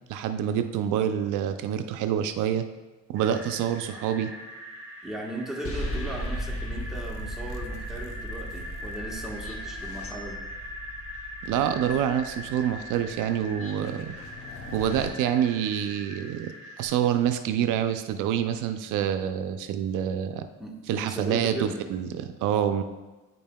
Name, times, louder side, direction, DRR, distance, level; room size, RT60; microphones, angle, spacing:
voice 1, 0.1-2.7 3.1-4.3 11.4-14.1 14.7-16.5 16.8-20.5 20.9-22.8, right 9 dB, 85° right, 8 dB, 0.5 m, -27 dB
sound 1, 3.2-16.9, left 1 dB, 50° right, 2.0 m, -41 dB
voice 2, 5.0-10.4 20.6-21.9, right 1 dB, ahead, -2 dB, 1.2 m, -37 dB
sound 2, 5.6-15.1, equal, 50° left, 0.9 m, -37 dB
9.2 x 5.3 x 2.2 m, 1.1 s
cardioid pair, 90°, 30 cm